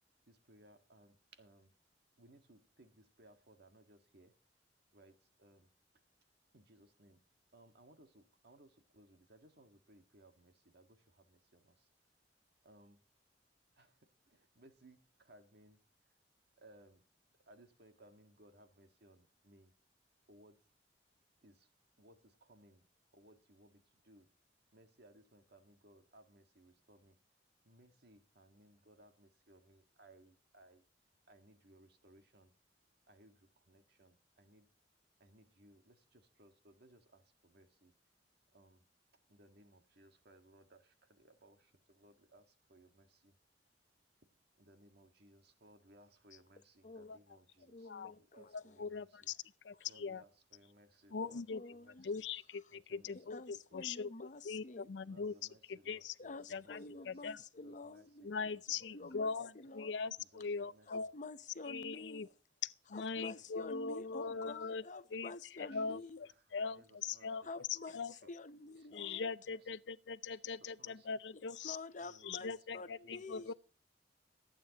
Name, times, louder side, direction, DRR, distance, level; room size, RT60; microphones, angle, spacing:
voice 1, 0.3-1.7 2.2-4.3 4.9-5.7 6.5-7.2 7.5-11.9 12.6-13.0 13.7-15.8 16.6-17.0 17.5-19.7 20.3-20.6 21.4-21.7 22.0-22.9 23.1-24.3 24.7-27.2 27.6-30.8 31.3-32.5 33.1-34.7 35.2-37.9 38.5-38.8 39.3-43.4 44.6-49.3 49.9-51.4 51.7-52.2 52.7-53.2 53.7-53.9 54.2-54.3 55.0-57.1 57.5-59.0 60.2-61.1 62.9-64.7 65.7-66.4 66.7-67.6 68.1-68.2 68.8-69.2 69.5-69.7 70.3-71.1 71.6-71.7 72.0-73.5, right 1 dB, 60° right, 1.7 m, -64 dB
voice 2, 46.8-47.2 47.7-48.8 51.2-52.1 53.1-54.9 56.2-59.9 60.9-62.2 62.9-66.2 67.4-69.3 71.3-73.5, left 3 dB, 45° left, 0.7 m, -49 dB
voice 3, 48.5-49.4 49.6-50.2 51.1-51.6 52.0-55.3 55.7-56.1 56.5-57.4 58.2-61.1 61.7-62.3 62.6-64.8 65.1-65.3 65.6-67.4 67.9-68.1 68.9-71.8 72.2-73.5, left 5 dB, 75° left, 0.5 m, -41 dB
22.0 x 9.0 x 2.9 m
head